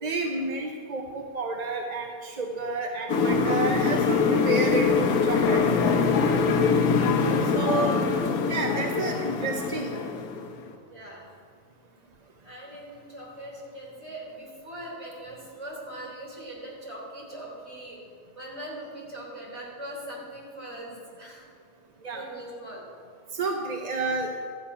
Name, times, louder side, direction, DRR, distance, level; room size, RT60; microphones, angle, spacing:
voice 1, 0.0-4.9 5.2-5.6 7.5-8.0 8.5-10.0 22.0-22.2 23.3-24.3, right 3 dB, 40° right, 2 dB, 0.6 m, -30 dB
sound 1, 3.1-10.7, left 5 dB, 80° left, 1.3 m, -23 dB
voice 2, 6.1-6.5 10.9-11.3 12.4-18.0 18.4-21.4 22.1-22.8, right 1 dB, 20° right, -5 dB, 3.6 m, -41 dB
12.5 x 9.1 x 5.6 m, 2.3 s
omnidirectional pair, 1.6 m